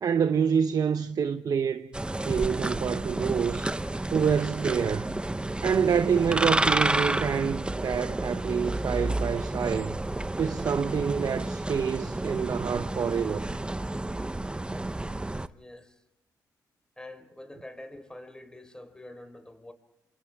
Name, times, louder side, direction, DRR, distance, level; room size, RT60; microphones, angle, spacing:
voice 1, 0.0-1.9 2.2-3.8 4.1-5.1 5.6-10.0 10.4-13.5, right 7 dB, 55° right, 1.0 m, -27 dB
sound 1, 1.9-15.5, right 2 dB, 15° right, 1.0 m, -30 dB
voice 2, 15.5-16.0 17.0-19.7, left 1 dB, 10° left, 4.5 m, -46 dB
29.5 x 27.0 x 3.7 m
cardioid pair, 70°, 7 cm